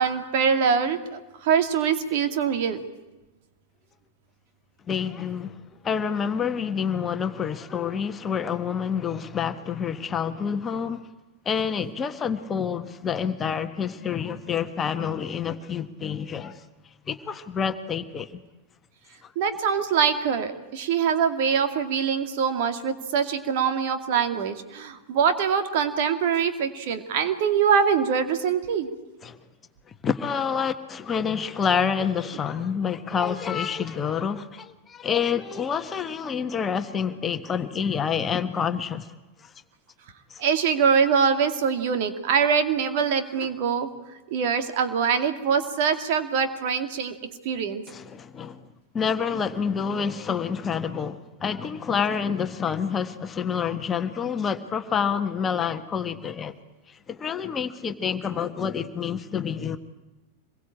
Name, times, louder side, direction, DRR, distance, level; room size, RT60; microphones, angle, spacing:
voice 1, 0.0-2.8 19.4-28.9 40.4-43.9 44.3-47.2 47.4-47.8, right 7 dB, 50° right, 2.5 m, -23 dB
voice 2, 4.9-5.6 5.8-11.0 11.4-16.6 17.1-18.4 29.2-29.4 30.0-39.1 39.4-39.5 40.3-40.4 47.9-48.6 48.9-56.5 56.9-59.8, left 7 dB, 20° left, 1.5 m, -28 dB
26.0 x 22.0 x 8.8 m
figure-of-eight pair, 90°, 0 cm